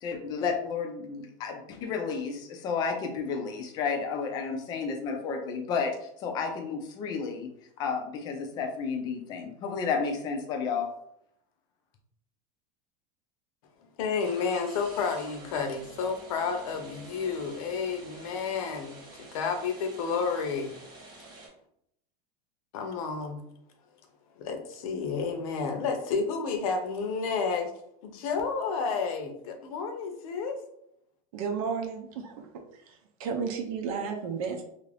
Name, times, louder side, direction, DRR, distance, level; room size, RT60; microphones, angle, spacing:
voice 1, 0.0-10.9, left 5 dB, 20° left, 4 dB, 0.4 m, -32 dB
voice 2, 14.0-20.7 22.7-23.4 24.4-27.7 28.0-30.6, left 5 dB, 70° left, 5 dB, 0.7 m, -31 dB
sound 1, 14.2-21.5, right 2 dB, 25° right, 0.7 m, -49 dB
voice 3, 31.3-32.5 32.7-34.6, right 6 dB, 70° right, 3 dB, 0.6 m, -33 dB
2.7 x 2.5 x 3.2 m, 0.73 s
supercardioid pair, 175°, 19 cm